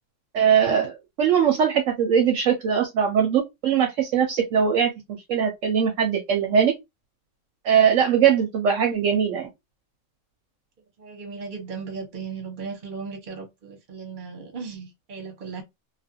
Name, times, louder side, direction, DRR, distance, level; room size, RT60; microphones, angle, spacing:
voice 1, 0.3-4.9 5.3-6.7 7.6-9.5, right 8 dB, 70° right, 0.9 m, -21 dB
voice 2, 11.0-15.6, right 5 dB, 40° right, 1.0 m, -36 dB
2.7 x 2.4 x 2.6 m
omnidirectional pair, 1.4 m